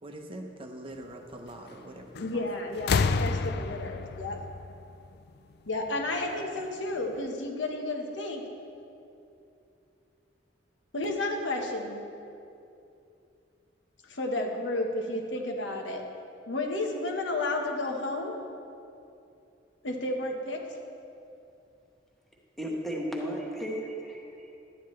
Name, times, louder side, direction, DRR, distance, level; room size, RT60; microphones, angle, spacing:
voice 1, 0.0-2.4, right 1 dB, 30° right, 3 dB, 0.7 m, -43 dB
sound 1, 2.1-2.4 2.8-5.5 6.6-6.7, left 4 dB, 60° left, 0.4 m, -29 dB
voice 2, 2.2-4.4 5.7-8.4 10.9-12.0 14.1-16.0 16.5-18.3 19.8-20.6, left 2 dB, 80° left, 2 dB, 1.2 m, -32 dB
voice 3, 22.6-24.6, equal, ahead, -2 dB, 1.2 m, -34 dB
12.0 x 9.4 x 3.2 m, 2.6 s
head